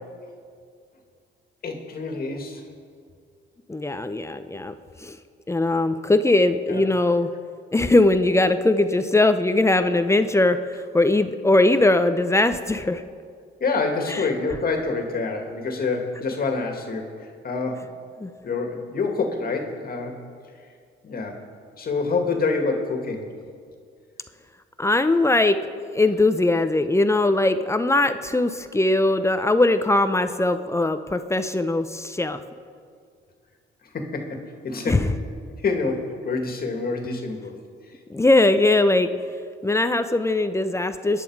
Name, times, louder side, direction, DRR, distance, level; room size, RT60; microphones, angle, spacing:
voice 1, 1.6-2.6 6.7-6.8 13.6-17.9 18.4-20.1 21.0-21.4 21.8-23.3 33.9-35.1 35.6-37.6, left 4 dB, 50° left, 3 dB, 2.0 m, -27 dB
voice 2, 3.7-4.7 5.0-5.2 5.5-7.3 7.7-13.0 14.1-14.2 18.2-18.3 24.8-25.6 25.9-32.4 34.9-35.1 38.1-39.1 39.6-41.2, left 2 dB, 15° left, 9 dB, 0.7 m, -20 dB
22.0 x 10.0 x 4.7 m, 2.2 s
cardioid pair, 90°, 20 cm